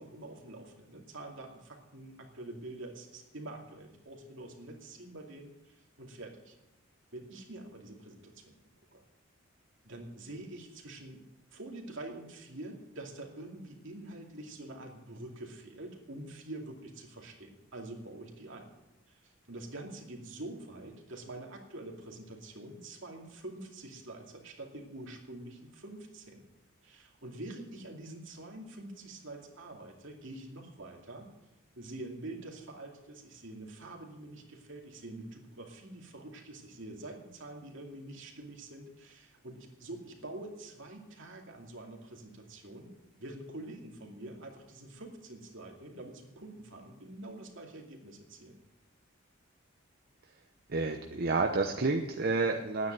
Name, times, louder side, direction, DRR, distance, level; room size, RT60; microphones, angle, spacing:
voice 1, 0.0-6.5 7.1-8.5 8.9-9.0 9.8-11.2 11.5-18.7 19.1-26.4 26.8-31.3 31.7-42.9 43.2-48.6, right 2 dB, 65° right, 1 dB, 2.6 m, -46 dB
voice 2, 50.7-52.9, right 3 dB, 50° right, 3 dB, 0.9 m, -30 dB
10.5 x 9.5 x 8.8 m, 0.95 s
head